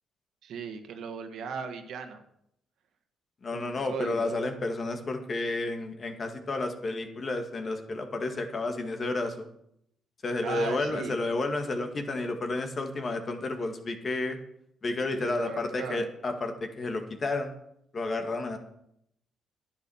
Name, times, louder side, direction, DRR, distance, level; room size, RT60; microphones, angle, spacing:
voice 1, 0.4-2.2 3.5-4.3 10.4-11.1 15.1-16.0, right 5 dB, 75° right, 6 dB, 1.6 m, -37 dB
voice 2, 3.4-9.5 10.2-14.4 14.8-17.5 17.9-18.6, left 2 dB, 40° left, 6 dB, 2.0 m, -31 dB
10.5 x 10.5 x 7.2 m, 0.76 s
cardioid pair, 90°, 0 cm